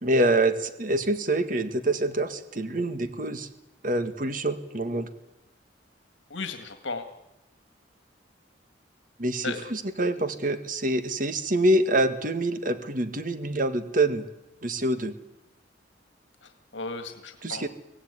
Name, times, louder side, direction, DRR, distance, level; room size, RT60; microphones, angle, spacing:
voice 1, 0.0-3.5 3.8-5.1 9.2-14.2 14.6-15.1 17.4-17.7, right 1 dB, 45° right, 10 dB, 1.8 m, -26 dB
voice 2, 6.3-7.0 9.4-9.7 16.4-17.7, left 3 dB, 80° left, 8 dB, 1.9 m, -35 dB
24.0 x 17.0 x 9.7 m, 0.94 s
head